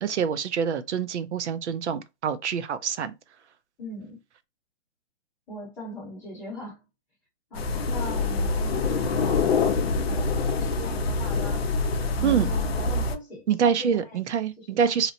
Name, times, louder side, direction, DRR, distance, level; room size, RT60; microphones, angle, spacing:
voice 1, 0.0-3.1 12.2-12.5 13.5-15.1, right 7 dB, 70° right, 0.5 m, -26 dB
voice 2, 3.8-4.2 5.5-6.8 7.5-11.6 12.2-14.2 14.6-14.9, left 1 dB, 5° left, 0.8 m, -40 dB
sound 1, 7.5-13.2, left 3 dB, 55° left, 0.5 m, -25 dB
2.8 x 2.0 x 2.7 m
hypercardioid pair, 155°, 36 cm